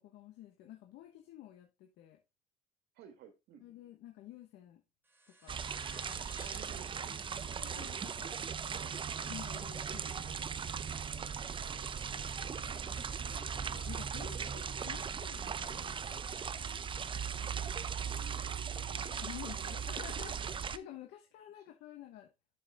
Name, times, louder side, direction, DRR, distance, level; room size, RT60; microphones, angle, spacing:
voice 1, 0.0-2.2 3.6-4.8 5.3-5.6 6.0-6.5 7.4-8.4 8.7-8.8 9.3-10.4 10.9-11.8 12.1-13.0 13.2-16.2 19.2-20.4 20.7-22.3, left 12 dB, 85° left, 1.2 m, -51 dB
voice 2, 2.9-3.6 6.4-7.1 8.7-8.9 17.5-17.7 18.0-19.7 21.5-21.7, right 8 dB, 75° right, 1.5 m, -55 dB
sound 1, 5.0-10.0, right 1 dB, 15° right, 1.6 m, -59 dB
sound 2, 5.5-20.8, right 7 dB, 30° right, 0.6 m, -38 dB
7.5 x 7.0 x 3.6 m
cardioid pair, 110°, 17 cm